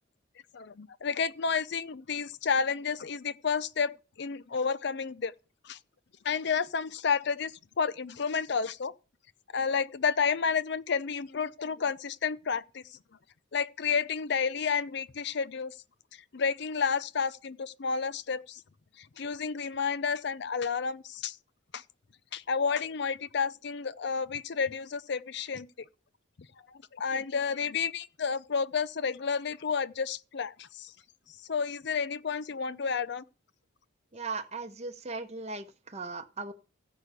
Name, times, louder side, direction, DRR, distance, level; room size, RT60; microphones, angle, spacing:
voice 1, 0.5-5.3 5.6-5.8 6.2-8.9 9.5-12.8 13.5-15.7 16.3-18.6 19.0-21.4 21.7-21.8 22.3-25.7 26.7-30.9 31.5-33.2, left 6 dB, 60° left, 0.5 m, -31 dB
voice 2, 34.1-36.5, right 3 dB, 35° right, 0.8 m, -38 dB
15.0 x 5.5 x 8.1 m
head